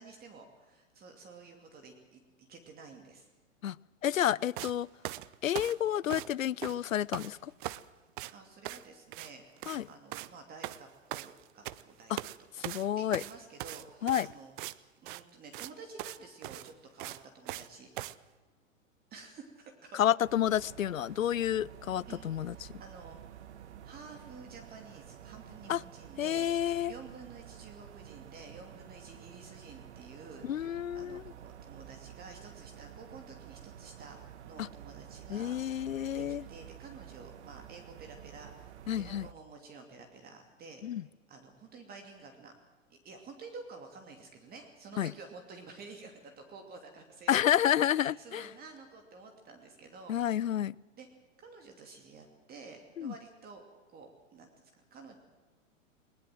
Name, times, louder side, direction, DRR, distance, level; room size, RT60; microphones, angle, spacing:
voice 1, 0.0-3.3 8.3-9.5 9.9-12.2 12.5-12.6 13.0-17.9 19.1-20.0 21.1-21.3 22.1-23.4 23.8-34.2 34.5-40.8 41.3-42.5 42.9-50.5 51.0-51.1 51.4-53.6 53.9-55.2, right 4 dB, 25° right, 4 dB, 2.7 m, -51 dB
voice 2, 4.0-4.9 5.4-7.5 9.7-9.9 12.1-12.2 12.6-13.2 14.0-14.3 19.9-22.5 25.7-25.8 26.2-26.9 30.4-31.2 34.6-34.7 35.3-36.4 38.9-39.3 40.8-41.0 45.0-45.1 47.3-48.5 50.1-50.8 53.0-53.1, left 10 dB, 80° left, 25 dB, 0.6 m, -30 dB
sound 1, 4.6-4.7 5.0-6.4 6.6-7.3 7.6-7.9 8.2-8.3 8.7-8.9 9.1-9.3 9.6-9.8 10.1-10.3 10.6-11.8 12.2-12.4 12.6-14.8 15.1-15.2 15.5-15.7 16.0-16.2 16.4-17.7 18.0-18.2, right 16 dB, 40° right, 0.8 m, -40 dB
sound 2, 20.2-39.3, right 10 dB, 55° right, 1.4 m, -50 dB
20.5 x 20.0 x 7.7 m, 1.3 s
figure-of-eight pair, 110°, 40 cm